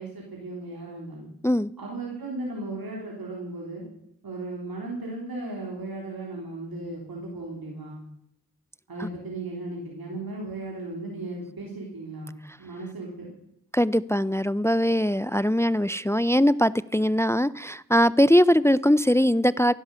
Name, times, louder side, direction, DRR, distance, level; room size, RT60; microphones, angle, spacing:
voice 1, 0.0-1.3 1.8-3.9 4.2-8.0 8.9-12.3 12.6-13.3, right 2 dB, 85° right, -2 dB, 3.4 m, -36 dB
voice 2, 13.7-19.7, equal, 10° left, 19 dB, 0.5 m, -21 dB
15.5 x 11.5 x 6.9 m, 0.78 s
cardioid pair, 40°, 35 cm